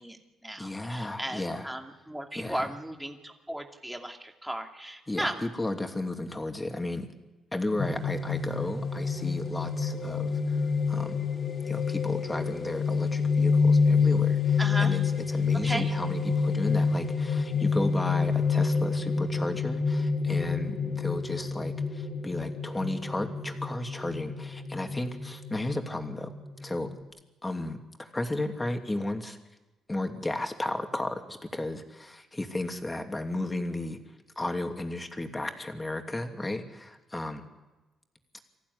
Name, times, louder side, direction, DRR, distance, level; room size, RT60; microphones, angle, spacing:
voice 1, 0.0-5.4 14.6-15.0 15.6-15.9, right 1 dB, 5° right, 2 dB, 2.6 m, -35 dB
voice 2, 0.6-1.7 2.3-2.7 5.1-7.1 7.5-10.6 10.9-11.2 11.7-15.0 15.3-26.3 26.6-26.9 27.4-29.4 29.9-34.0 34.4-37.4, left 2 dB, 15° left, 4 dB, 2.8 m, -34 dB
sound 1, 7.8-27.0, left 5 dB, 45° left, 2.7 m, -28 dB
25.0 x 15.5 x 9.8 m, 1.1 s
cardioid pair, 90°, 0 cm